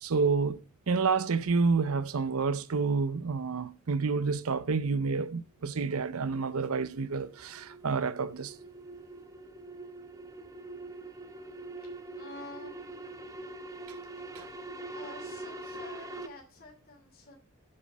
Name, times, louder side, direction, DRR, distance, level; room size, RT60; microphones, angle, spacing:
voice 1, 0.0-8.5 14.4-14.5, right 4 dB, 80° right, 0.6 m, -29 dB
Rise Swell, 6.8-16.3, right 2 dB, 15° right, 0.9 m, -44 dB
voice 2, 12.2-13.3 14.9-17.4, left 2 dB, 45° left, 2.9 m, -48 dB
7.6 x 7.5 x 6.1 m
head